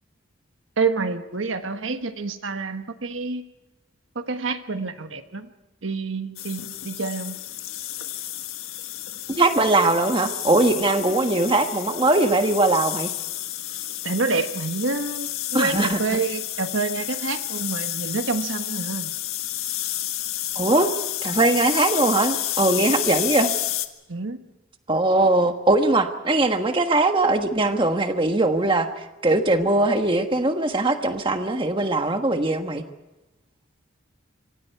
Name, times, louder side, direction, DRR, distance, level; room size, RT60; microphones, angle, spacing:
voice 1, 0.8-3.4 4.1-5.5 5.8-7.5 14.0-19.1 24.1-24.4, right 4 dB, 70° right, 8 dB, 1.3 m, -28 dB
sound 1, 6.4-23.9, left 13 dB, 90° left, 1.6 m, -30 dB
voice 2, 9.3-13.1 15.5-16.0 20.5-20.9 21.2-23.5 24.9-32.8, right 2 dB, 25° right, 6 dB, 1.4 m, -21 dB
26.5 x 25.0 x 4.7 m, 1.0 s
head